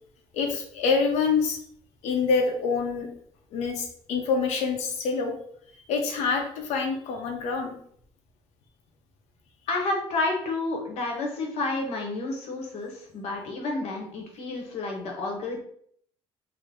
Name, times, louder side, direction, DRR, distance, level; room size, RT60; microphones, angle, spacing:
voice 1, 0.3-1.6 2.0-3.1 3.5-5.3 5.9-7.8, left 5 dB, 85° left, 3 dB, 0.8 m, -26 dB
voice 2, 9.7-15.6, left 2 dB, 70° left, 1 dB, 1.0 m, -30 dB
3.8 x 2.1 x 3.5 m, 0.64 s
cardioid pair, 165°, 11 cm